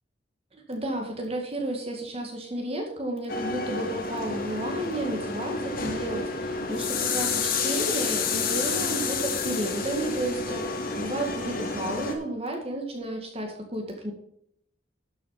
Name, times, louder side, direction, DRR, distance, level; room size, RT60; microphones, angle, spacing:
voice 1, 0.5-14.1, right 1 dB, 35° right, 2 dB, 2.0 m, -32 dB
sound 1, 3.3-12.1, left 4 dB, 50° left, 2.3 m, -29 dB
12.5 x 6.4 x 5.8 m, 0.70 s
head